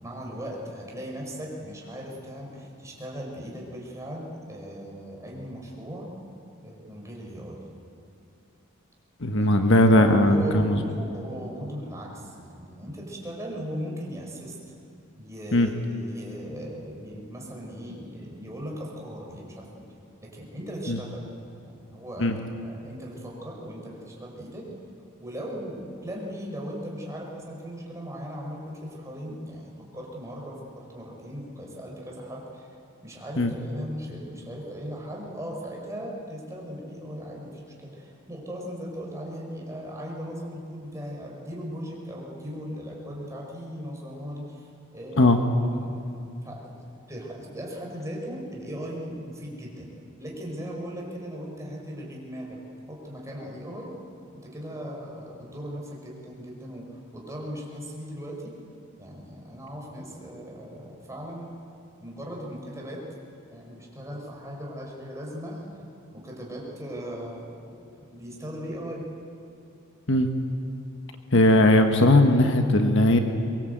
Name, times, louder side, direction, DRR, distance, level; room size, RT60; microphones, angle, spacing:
voice 1, 0.0-6.1 6.6-7.6 9.3-9.5 9.9-10.0 10.2-14.6 15.2-19.9 20.2-21.2 21.6-24.7 25.2-32.7 33.0-45.4 45.7-46.1 46.4-46.6 46.9-49.9 50.2-52.6 52.9-53.9 54.3-58.5 59.0-61.5 62.0-63.0 63.5-65.9 66.1-69.0, equal, 15° right, -2 dB, 5.1 m, -38 dB
voice 2, 9.2-10.8 15.5-15.7 20.9-21.0 22.2-22.4 33.4-33.5 45.2-45.4 70.1-70.3 71.3-73.2, left 1 dB, 60° left, 5 dB, 1.5 m, -18 dB
23.0 x 22.5 x 8.1 m, 2.6 s
head